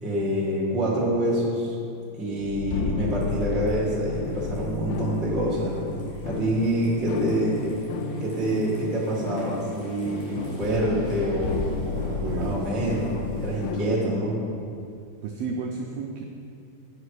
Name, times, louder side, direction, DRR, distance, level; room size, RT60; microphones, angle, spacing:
voice 1, 0.0-1.7 2.2-5.8 6.2-7.8 8.2-11.6 12.3-14.4, right 1 dB, ahead, -5 dB, 0.7 m, -26 dB
sound 1, 2.4-13.9, left 4 dB, 80° left, 1.8 m, -33 dB
sound 2, 3.0-13.8, left 1 dB, 60° left, 2.7 m, -40 dB
voice 2, 12.2-12.6 15.2-16.2, right 4 dB, 80° right, 2 dB, 1.5 m, -32 dB
8.7 x 5.8 x 4.8 m, 2.5 s
omnidirectional pair, 3.4 m